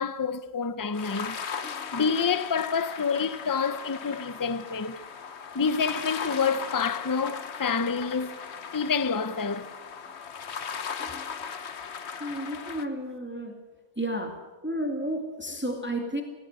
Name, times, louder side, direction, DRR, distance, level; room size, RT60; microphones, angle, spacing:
voice 1, 0.0-1.4 1.9-5.0 5.5-8.4 8.7-9.7, left 5 dB, 20° left, 0.6 m, -28 dB
sound 1, 0.9-12.9, left 6 dB, 60° left, 1.3 m, -38 dB
voice 2, 12.2-13.6 14.0-14.4 14.6-16.2, right 1 dB, 10° right, 2.4 m, -32 dB
19.5 x 17.0 x 8.1 m
omnidirectional pair, 1.3 m